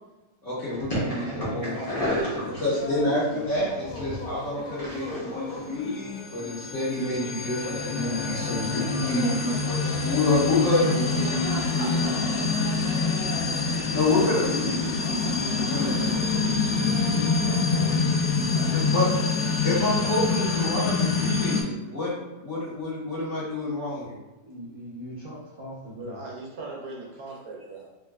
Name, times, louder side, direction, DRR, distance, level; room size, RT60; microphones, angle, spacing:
voice 1, 0.4-2.0 2.6-11.2 13.9-14.9 15.5-16.2 18.6-19.1 19.6-22.1 22.4-24.2, left 2 dB, 45° left, -8 dB, 1.4 m, -28 dB
sound 1, 0.7-5.8, equal, 30° left, 0.8 m, -33 dB
voice 2, 1.1-2.8 3.0-3.6 10.3-14.4 15.6-18.1 18.5-21.1 24.4-26.2, equal, 35° right, -11 dB, 0.4 m, -40 dB
sound 2, 1.5-17.9, left 2 dB, 70° left, 0.9 m, -41 dB
sound 3, 5.9-21.6, left 4 dB, 90° left, 0.6 m, -26 dB
voice 3, 11.2-12.7 26.0-27.9, right 2 dB, 70° right, -2 dB, 1.2 m, -39 dB
3.6 x 3.2 x 2.3 m, 1.1 s
omnidirectional pair, 1.9 m